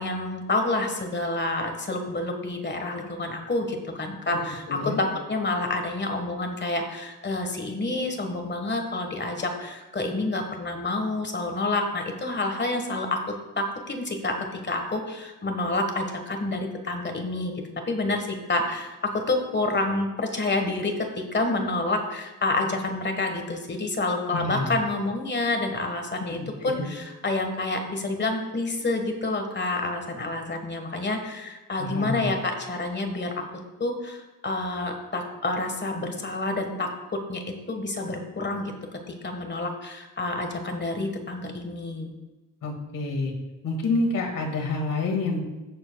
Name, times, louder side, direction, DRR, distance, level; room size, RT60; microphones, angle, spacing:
voice 1, 0.0-13.2 13.6-33.4 33.8-36.9 37.3-38.7 39.2-42.1, left 2 dB, 35° left, 4 dB, 1.5 m, -28 dB
voice 2, 4.7-5.0 24.3-24.8 26.6-26.9 31.8-32.3 42.6-43.3 43.6-45.4, left 3 dB, 80° left, 1 dB, 2.1 m, -28 dB
16.0 x 7.2 x 2.3 m, 1.1 s
cardioid pair, 110°, 33 cm